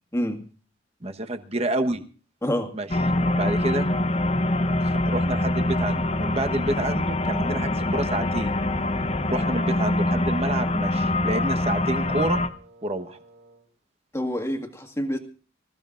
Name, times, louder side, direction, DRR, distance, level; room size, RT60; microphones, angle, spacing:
voice 1, 1.0-2.0 2.7-2.9 3.3-3.9 4.8-8.6 9.3-12.4 12.8-13.2, right 2 dB, 30° right, 6 dB, 1.2 m, -28 dB
voice 2, 2.4-2.7 14.1-15.2, equal, 15° left, 4 dB, 1.9 m, -27 dB
sound 1, 2.9-12.5, left 1 dB, 30° left, 0.9 m, -24 dB
Wind instrument woodwind instrument, 7.9-13.7, right 2 dB, 50° right, 4.3 m, -51 dB
26.5 x 15.0 x 2.5 m, 0.37 s
head